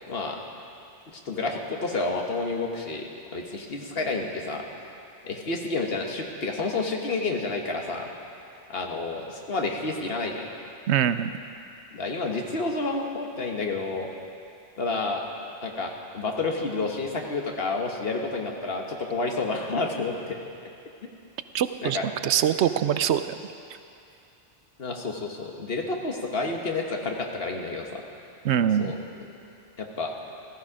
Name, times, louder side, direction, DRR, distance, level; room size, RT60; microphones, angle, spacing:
voice 1, 0.1-0.4 1.3-4.7 5.2-8.1 8.7-10.5 11.9-14.1 14.8-15.2 15.6-20.4 21.8-22.0 24.8-28.0 28.8-29.0 29.8-30.1, left 3 dB, 65° left, 1 dB, 1.5 m, -30 dB
voice 2, 10.9-11.3 21.5-23.4 28.4-28.9, right 9 dB, 80° right, 11 dB, 0.9 m, -23 dB
15.5 x 14.5 x 4.9 m, 2.6 s
omnidirectional pair, 1.1 m